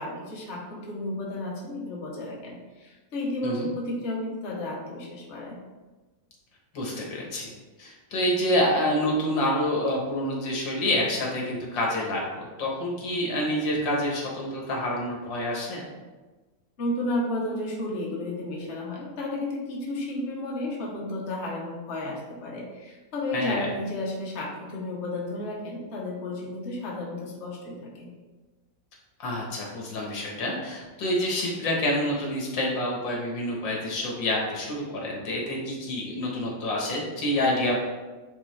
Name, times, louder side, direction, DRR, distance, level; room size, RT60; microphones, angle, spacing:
voice 1, 0.0-5.6 16.8-28.1, left 1 dB, 40° left, -3 dB, 1.3 m, -32 dB
voice 2, 6.7-7.5 7.8-15.8 23.3-23.7 29.2-37.8, left 1 dB, 75° left, -2 dB, 2.1 m, -27 dB
8.7 x 3.8 x 3.3 m, 1.2 s
omnidirectional pair, 2.0 m